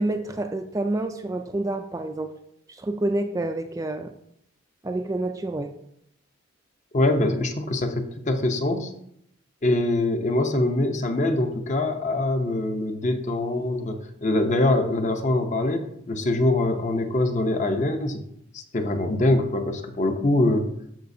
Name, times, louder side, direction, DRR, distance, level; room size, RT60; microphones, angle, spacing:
voice 1, 0.0-2.3 2.7-4.1 4.8-5.7, right 2 dB, 15° right, 6 dB, 0.3 m, -28 dB
voice 2, 6.9-8.9 9.6-18.2 18.5-20.7, left 2 dB, 35° left, 6 dB, 0.7 m, -24 dB
13.5 x 5.0 x 2.7 m, 0.73 s
head